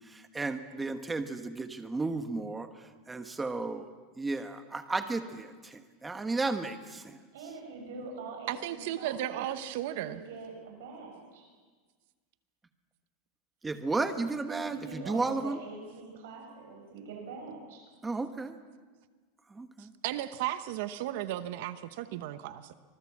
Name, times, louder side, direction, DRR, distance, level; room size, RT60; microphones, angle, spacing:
voice 1, 0.1-2.7 3.1-3.9 4.2-7.2 13.6-15.6 18.0-18.6 19.5-19.9, right 3 dB, 10° right, 8 dB, 1.2 m, -33 dB
voice 2, 7.3-9.6 9.9-11.4 14.5-17.8, right 4 dB, 80° right, 1 dB, 6.8 m, -44 dB
voice 3, 8.5-10.2 19.8-22.7, right 13 dB, 60° right, 11 dB, 0.9 m, -35 dB
25.5 x 19.5 x 7.4 m, 1.4 s
supercardioid pair, 175°, 0 cm